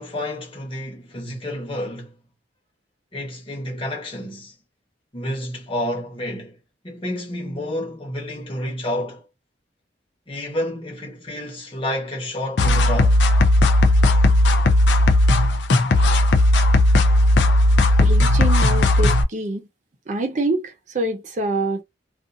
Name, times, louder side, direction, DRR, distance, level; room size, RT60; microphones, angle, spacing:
voice 1, 0.0-2.2 3.1-4.5 5.1-6.6 6.8-9.3 10.3-13.2, left 1 dB, 30° left, 1.1 m, -29 dB
sound 1, 12.6-19.2, left 1 dB, 75° left, 0.5 m, -16 dB
voice 2, 18.0-19.7 20.1-21.8, right 2 dB, 40° right, 0.5 m, -25 dB
2.5 x 2.5 x 2.6 m
head